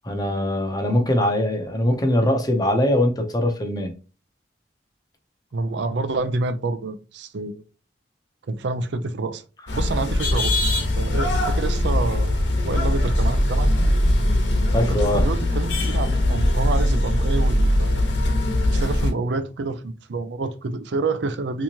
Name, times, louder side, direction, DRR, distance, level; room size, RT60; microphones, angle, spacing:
voice 1, 0.0-4.0 14.7-15.3, left 1 dB, 20° left, 0.7 m, -22 dB
voice 2, 5.5-7.6 8.5-9.4 9.7-10.5 11.0-13.7 14.8-18.1 18.7-21.6, right 3 dB, 75° right, 0.5 m, -28 dB
sound 1, 9.7-19.1, left 1 dB, 80° left, 1.1 m, -21 dB
3.4 x 3.0 x 2.8 m
head